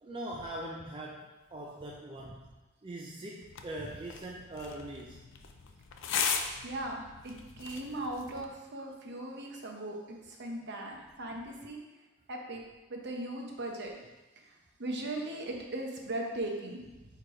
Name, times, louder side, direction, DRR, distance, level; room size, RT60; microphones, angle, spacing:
voice 1, 0.0-5.2 6.1-6.2, right 1 dB, 25° right, -2 dB, 0.4 m, -42 dB
sound 1, 3.4-8.4, left 6 dB, 55° left, 0.5 m, -38 dB
voice 2, 6.6-11.8 12.3-12.6 12.9-13.9 14.4-14.5 14.8-17.1, right 1 dB, 50° right, 1 dB, 0.9 m, -38 dB
4.7 x 4.7 x 4.9 m, 1.1 s
head